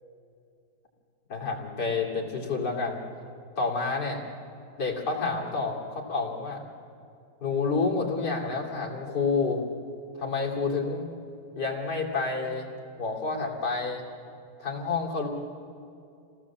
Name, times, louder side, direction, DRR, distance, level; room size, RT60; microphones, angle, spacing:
voice 1, 1.3-3.0 3.6-4.2 4.8-6.6 7.4-9.6 10.1-11.1 11.6-12.7 13.0-14.0 14.6-15.3, left 4 dB, 55° left, -1 dB, 3.4 m, -29 dB
28.0 x 18.0 x 7.3 m, 2.5 s
omnidirectional pair, 2.2 m